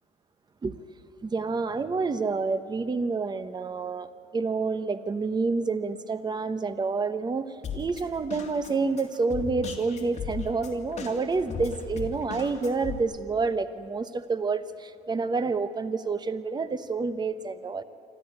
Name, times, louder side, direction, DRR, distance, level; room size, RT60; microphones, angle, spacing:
voice 1, 1.2-17.8, right 4 dB, 25° right, 12 dB, 1.0 m, -28 dB
Drum kit, 7.6-13.0, left 6 dB, 40° left, 3.0 m, -37 dB
26.0 x 13.5 x 9.7 m, 2.4 s
cardioid pair, 110°, 17 cm